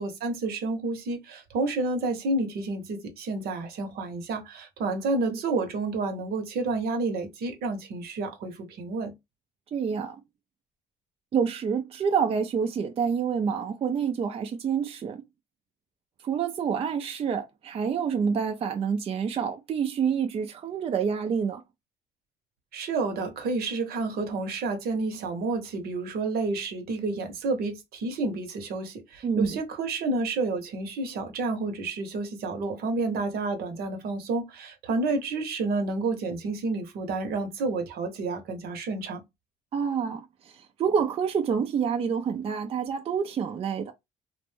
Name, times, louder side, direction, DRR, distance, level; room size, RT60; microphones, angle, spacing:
voice 1, 0.0-9.1 22.7-39.2, right 3 dB, 65° right, 0.8 m, -30 dB
voice 2, 9.7-10.2 11.3-15.2 16.2-21.6 25.1-25.3 29.2-29.6 33.1-33.2 39.7-43.9, right 6 dB, 35° right, 0.4 m, -28 dB
2.5 x 2.1 x 3.2 m
cardioid pair, 110°, 17 cm